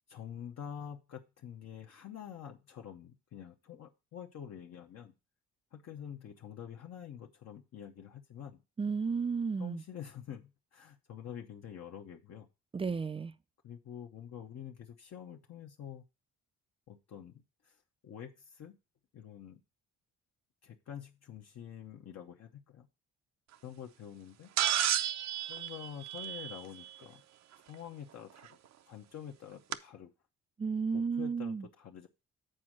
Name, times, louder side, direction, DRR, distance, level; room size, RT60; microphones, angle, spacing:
voice 1, 0.1-5.1 5.7-8.6 9.6-12.5 13.6-16.0 16.9-17.8 18.0-18.8 19.1-19.6 20.6-22.9 23.6-24.5 25.5-27.2 27.7-28.6 28.9-30.1 30.9-32.1, left 9 dB, 60° left, 0.8 m, -47 dB
voice 2, 8.8-9.8 12.7-13.3 30.6-31.7, right 5 dB, 20° right, 0.3 m, -33 dB
sound 1, 24.6-26.9 28.5-28.6 29.7-29.8, right 10 dB, 60° right, 0.6 m, -32 dB
7.7 x 4.4 x 6.2 m
cardioid pair, 90°, 30 cm